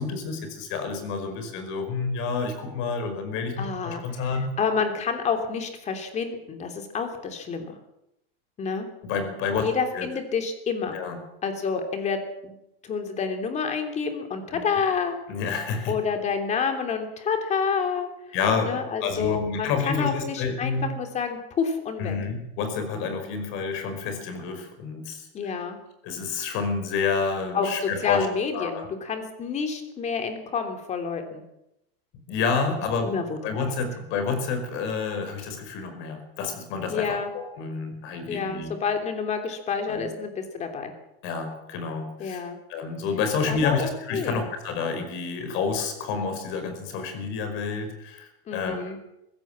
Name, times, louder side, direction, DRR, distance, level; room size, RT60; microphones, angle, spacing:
voice 1, 0.0-4.6 9.0-9.7 9.9-10.1 10.9-11.2 14.5-14.6 15.3-15.9 18.3-20.9 22.0-25.6 26.0-28.3 28.5-28.9 32.3-38.7 39.9-40.1 41.2-49.1, left 5 dB, 40° left, 7 dB, 5.3 m, -29 dB
voice 2, 3.6-7.8 8.6-8.9 9.6-11.0 11.4-12.5 12.8-15.1 15.9-18.1 18.6-22.1 25.3-25.8 27.5-31.4 33.0-33.4 36.9-37.3 38.3-40.9 42.2-42.6 43.5-44.5 48.5-49.0, left 5 dB, 20° left, 5 dB, 3.2 m, -29 dB
21.5 x 16.5 x 7.4 m, 0.85 s
supercardioid pair, 155°, 30 cm